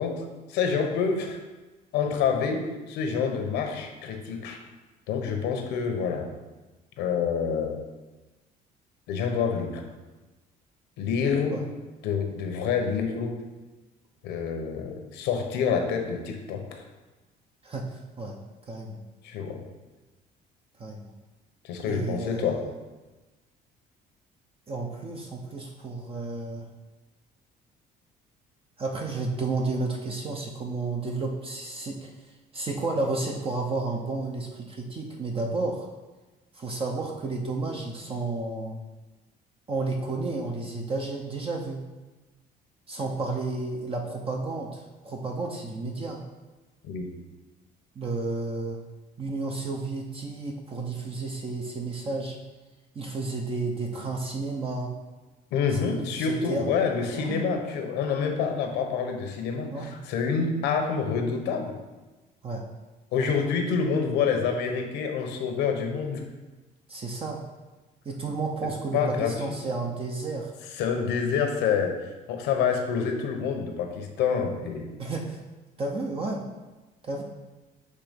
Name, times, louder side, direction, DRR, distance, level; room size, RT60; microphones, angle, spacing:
voice 1, 0.0-1.4 1.9-4.6 5.1-6.3 7.0-7.8 9.1-9.8 11.0-11.6 12.0-13.3 14.2-16.8 19.2-19.6 21.6-22.6 46.8-47.1 55.5-61.7 63.1-66.2 68.9-69.4 70.8-72.0 72.3-74.9, left 6 dB, 90° left, 4 dB, 1.0 m, -27 dB
voice 2, 17.6-18.4 18.7-19.0 20.8-21.1 21.8-22.5 24.7-26.7 28.8-35.9 36.5-38.8 39.7-41.8 42.9-46.2 48.0-48.8 49.2-52.4 52.9-54.9 55.7-56.7 56.9-57.5 59.7-60.0 62.4-62.6 63.1-63.3 66.9-67.4 68.0-70.5 75.0-75.4 75.8-76.4 77.0-77.2, right 3 dB, 35° right, 1 dB, 0.8 m, -32 dB
6.7 x 3.4 x 5.1 m, 1.2 s
cardioid pair, 110°, 17 cm